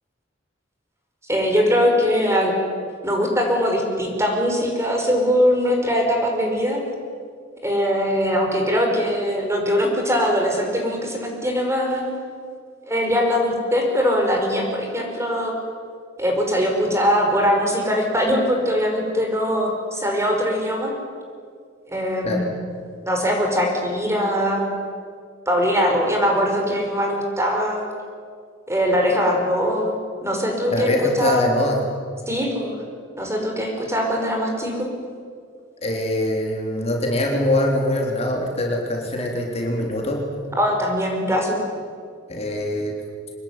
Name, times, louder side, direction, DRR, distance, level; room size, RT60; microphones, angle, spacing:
voice 1, 1.3-2.5 3.0-6.8 7.6-12.2 12.9-15.6 16.2-20.9 21.9-22.7 23.1-24.7 25.5-27.9 28.7-29.9 30.2-30.9 31.2-31.4 32.3-32.8 33.2-34.9 40.6-41.6, equal, 15° right, 1 dB, 5.3 m, -21 dB
voice 2, 30.7-31.8 35.8-40.4 42.3-42.9, left 1 dB, 35° left, 0 dB, 3.7 m, -23 dB
25.5 x 20.5 x 9.7 m, 2.1 s
head